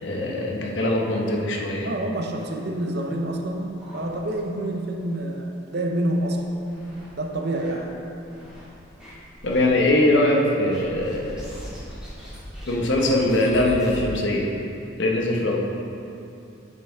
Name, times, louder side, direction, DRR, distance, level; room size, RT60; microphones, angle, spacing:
voice 1, 0.0-1.9 9.4-11.5 12.7-14.5 15.0-15.6, left 1 dB, 65° left, -1 dB, 0.9 m, -22 dB
voice 2, 1.8-6.6 7.2-8.0, right 1 dB, 55° right, 2 dB, 0.7 m, -27 dB
sound 1, 3.8-4.7 5.0-5.1 5.5-5.6 6.2-7.1 7.6-8.6 9.0-9.7 10.7-14.0, equal, 5° right, 1.8 m, -41 dB
9.0 x 5.8 x 3.5 m, 2.8 s
head